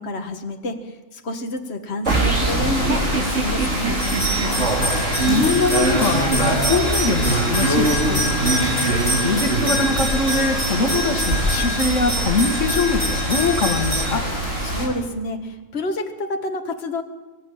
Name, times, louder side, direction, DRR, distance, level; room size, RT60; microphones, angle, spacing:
voice 1, 0.0-4.0 14.6-17.0, left 1 dB, 55° left, 4 dB, 1.8 m, -28 dB
sound 1, 2.0-14.9, right 1 dB, 85° right, 8.0 m, -25 dB
sound 2, 2.1-10.3, right 3 dB, 65° right, 3.0 m, -24 dB
sound 3, 4.0-14.1, left 1 dB, 25° left, 4.3 m, -26 dB
voice 2, 5.2-8.3 9.2-14.2, left 4 dB, 75° left, 6 dB, 2.0 m, -22 dB
24.0 x 15.0 x 9.0 m, 1.3 s
omnidirectional pair, 1.3 m